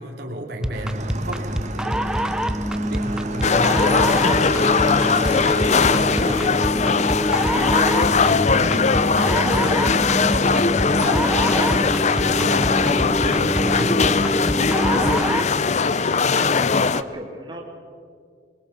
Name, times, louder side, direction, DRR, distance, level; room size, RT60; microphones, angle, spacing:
voice 1, 0.0-2.6 2.9-4.0 4.5-6.6 13.4-14.0, right 1 dB, 60° right, 1 dB, 2.5 m, -34 dB
sound 1, 0.6-15.6, equal, 5° right, 0.5 m, -25 dB
Motorcycle / Engine, 0.7-6.6, right 3 dB, 40° right, 1.9 m, -34 dB
sound 2, 3.4-17.0, left 5 dB, 40° left, 0.6 m, -20 dB
voice 2, 8.0-13.1 13.4-16.5 16.9-17.6, right 1 dB, 25° right, 0 dB, 2.9 m, -37 dB
23.0 x 22.5 x 6.8 m, 2.2 s
head